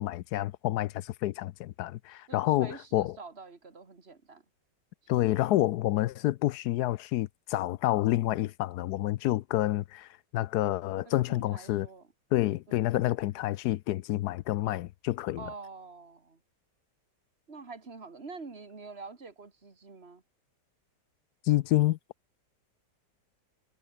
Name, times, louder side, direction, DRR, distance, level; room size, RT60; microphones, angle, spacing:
voice 1, 0.0-3.2 5.1-11.9 12.3-15.4 21.4-22.0, left 15 dB, 75° left, 1.0 m, -28 dB
voice 2, 2.3-4.4 5.2-5.4 11.0-12.1 12.7-12.9 15.4-16.4 17.5-20.2, right 4 dB, 35° right, 2.6 m, -46 dB
omnidirectional pair, 1.9 m